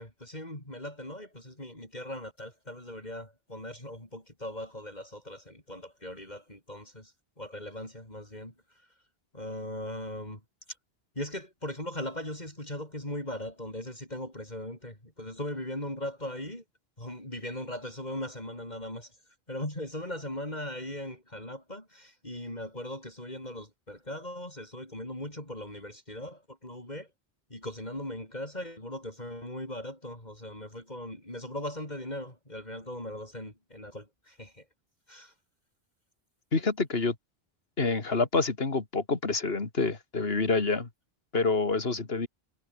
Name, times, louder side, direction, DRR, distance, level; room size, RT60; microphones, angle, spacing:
voice 1, 0.0-8.8 9.3-10.4 11.2-16.6 17.0-19.2 19.5-27.1 27.5-34.7 35.1-35.3, left 1 dB, 45° left, 6.9 m, -39 dB
voice 2, 36.5-37.1 37.8-40.9 41.3-42.3, left 3 dB, 75° left, 2.6 m, -27 dB
omnidirectional pair, 1.0 m